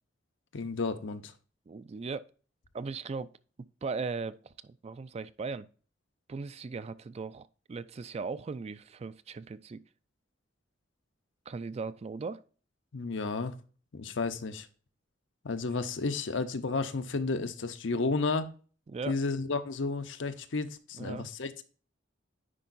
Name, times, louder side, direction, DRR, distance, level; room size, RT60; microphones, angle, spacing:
voice 1, 0.5-1.3 12.9-13.6 13.9-14.7 15.4-18.5 19.1-21.6, left 3 dB, 70° left, 0.7 m, -32 dB
voice 2, 1.7-2.3 2.7-3.3 3.8-5.7 6.3-9.8 11.5-12.4 18.9-19.2 21.0-21.3, right 4 dB, 35° right, 0.3 m, -38 dB
9.9 x 4.6 x 2.5 m
head